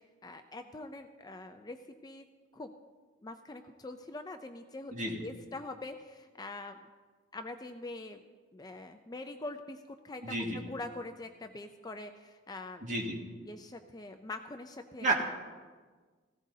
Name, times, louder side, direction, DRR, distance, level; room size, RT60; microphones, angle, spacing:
voice 1, 0.0-2.3 2.5-2.7 3.2-4.9 5.2-6.9 7.3-8.2 8.5-12.9 13.5-15.1, left 2 dB, 20° left, 6 dB, 0.5 m, -44 dB
voice 2, 10.2-10.6 12.8-13.2 15.0-15.1, right 2 dB, 40° right, 0 dB, 1.9 m, -31 dB
17.5 x 15.5 x 2.8 m, 1.4 s
head